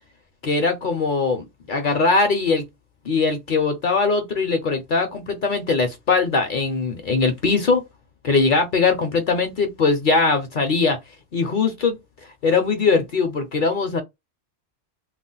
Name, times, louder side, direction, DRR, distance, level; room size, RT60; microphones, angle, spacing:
voice 1, 0.4-2.6 3.1-7.8 8.2-11.0 11.3-12.0 12.4-14.0, left 4 dB, 55° left, 0.6 m, -21 dB
2.4 x 2.1 x 3.8 m
omnidirectional pair, 1.2 m